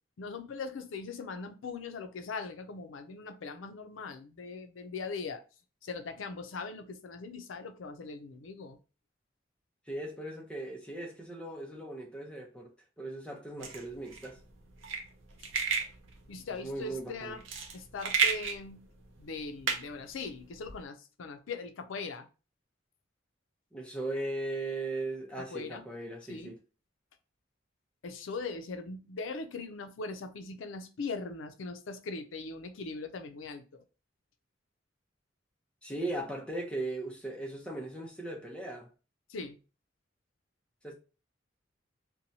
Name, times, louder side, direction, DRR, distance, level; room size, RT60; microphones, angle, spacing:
voice 1, 0.2-5.4 5.8-8.8 15.4-15.5 16.3-17.4 17.7-18.8 19.2-22.3 25.5-25.8 26.3-26.5 28.0-33.8 39.3-39.6, left 4 dB, 90° left, 0.5 m, -40 dB
voice 2, 9.9-12.7 13.0-14.4 16.6-17.4 23.7-26.6 35.8-38.9 40.8-40.9, right 2 dB, 5° left, 0.5 m, -38 dB
sound 1, 13.6-20.8, right 6 dB, 85° right, 0.5 m, -34 dB
2.7 x 2.2 x 2.7 m
head